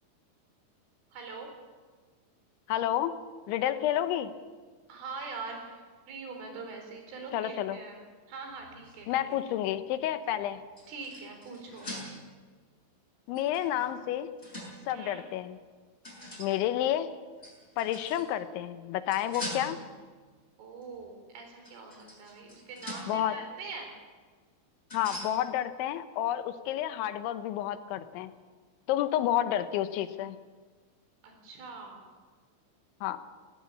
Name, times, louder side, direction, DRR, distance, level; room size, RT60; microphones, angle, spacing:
voice 1, 1.1-1.5 4.9-8.0 8.3-9.4 10.9-11.9 14.9-15.2 20.6-23.9 31.2-32.0, right 4 dB, 85° right, 3 dB, 6.6 m, -43 dB
voice 2, 2.7-3.1 3.5-4.3 7.3-7.8 9.1-10.6 13.3-14.3 14.9-15.6 16.4-17.1 17.8-19.8 23.1-23.4 24.9-28.3 28.9-30.4 33.0-33.2, left 12 dB, 80° left, 11 dB, 3.3 m, -30 dB
sound 1, 8.5-9.8 10.3-12.4 13.3-14.9 16.0-16.6 17.4-18.3 19.1-20.1 20.8-21.0 21.6-23.3 24.9-25.4, left 1 dB, 10° left, 6.6 m, -43 dB
19.0 x 18.0 x 8.6 m, 1.5 s
omnidirectional pair, 5.5 m